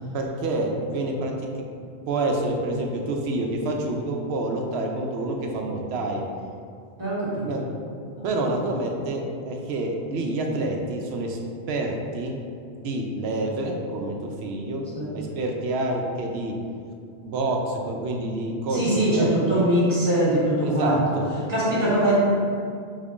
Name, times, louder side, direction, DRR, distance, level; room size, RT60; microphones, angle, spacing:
voice 1, 0.1-1.3 2.1-6.2 7.4-7.6 8.2-11.4 11.7-12.3 12.8-14.8 15.1-16.5 17.2-19.7 20.6-21.2, right 2 dB, 70° right, 1 dB, 0.8 m, -27 dB
voice 2, 7.0-7.6 8.2-8.5 14.9-15.1 18.7-21.2 21.5-22.2, right 1 dB, 20° right, -8 dB, 1.2 m, -22 dB
5.2 x 3.6 x 2.5 m, 2.3 s
omnidirectional pair, 1.2 m